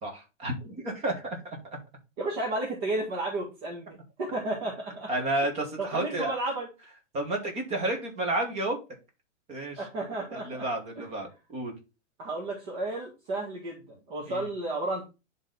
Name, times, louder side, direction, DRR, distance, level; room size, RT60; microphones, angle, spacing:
voice 1, 0.0-1.6 5.1-6.3 7.1-8.8 9.5-9.8 10.3-11.7 14.3-14.5, right 1 dB, 15° right, 3 dB, 1.5 m, -31 dB
voice 2, 2.2-5.1 5.8-6.7 9.8-10.7 11.0-11.1 12.2-15.0, right 2 dB, 35° right, -2 dB, 1.9 m, -32 dB
10.0 x 4.0 x 3.9 m, 0.29 s
hypercardioid pair, 165°, 38 cm